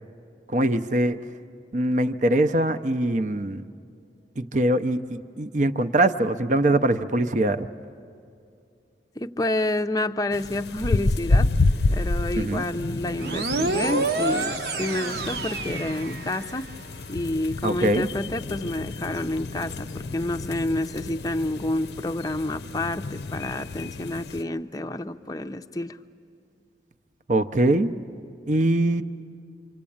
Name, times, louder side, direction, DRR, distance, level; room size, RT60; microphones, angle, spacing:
voice 1, 0.5-1.2 1.7-3.6 4.4-7.7 12.3-12.6 17.6-18.1 27.3-27.9 28.5-29.0, right 1 dB, 40° right, 10 dB, 0.6 m, -22 dB
voice 2, 9.2-11.5 11.9-16.7 17.1-26.0, left 1 dB, 20° left, 8 dB, 0.6 m, -29 dB
sound 1, 10.3-24.4, left 2 dB, 65° left, 0.6 m, -29 dB
sound 2, 13.2-16.7, right 3 dB, 60° right, 0.9 m, -28 dB
27.0 x 25.5 x 8.6 m, 2.5 s
head